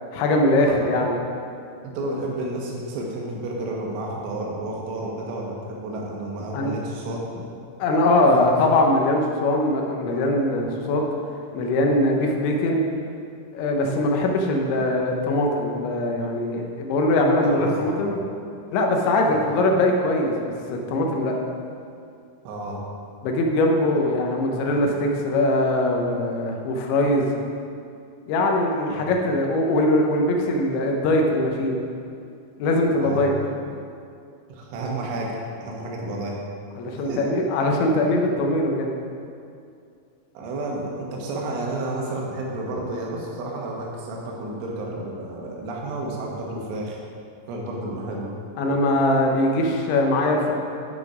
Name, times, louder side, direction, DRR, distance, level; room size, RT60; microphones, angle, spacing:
voice 1, 0.1-1.2 6.5-6.7 7.8-11.0 11.5-12.9 13.5-18.3 18.7-21.3 23.2-27.3 28.3-31.8 32.6-33.3 36.8-39.0 48.6-50.6, left 1 dB, 80° left, 1 dB, 3.2 m, -21 dB
voice 2, 1.8-7.2 8.3-8.6 17.2-18.1 22.5-22.8 28.9-29.2 33.0-33.3 34.5-36.4 37.1-37.3 40.4-47.0 47.5-48.3, right 2 dB, 90° right, -2 dB, 3.8 m, -31 dB
9.2 x 6.7 x 4.9 m, 2.4 s
omnidirectional pair, 5.3 m